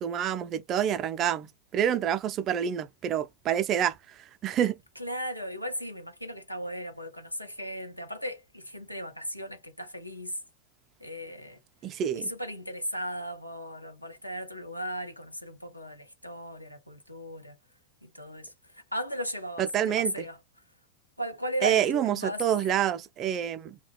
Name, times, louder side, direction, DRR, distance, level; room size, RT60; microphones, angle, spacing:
voice 1, 0.0-4.7 11.8-12.3 19.6-20.1 21.6-23.8, right 9 dB, 30° right, 0.4 m, -27 dB
voice 2, 5.0-10.4 11.0-11.6 12.2-17.6 18.0-20.4 21.2-22.4, equal, 90° left, 0.6 m, -36 dB
2.3 x 2.2 x 3.2 m
figure-of-eight pair, 90°, 0 cm